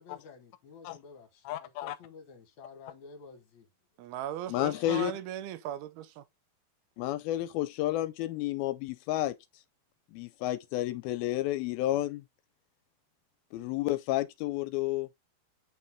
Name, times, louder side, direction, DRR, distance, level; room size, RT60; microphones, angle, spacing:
voice 1, 0.0-3.7, left 4 dB, 60° left, 2.2 m, -51 dB
voice 2, 1.5-2.0 4.5-5.1 7.0-9.4 10.1-12.2 13.5-15.1, left 14 dB, 80° left, 2.4 m, -31 dB
voice 3, 4.0-6.2, right 11 dB, 85° right, 2.7 m, -38 dB
8.7 x 5.4 x 3.6 m
omnidirectional pair, 4.4 m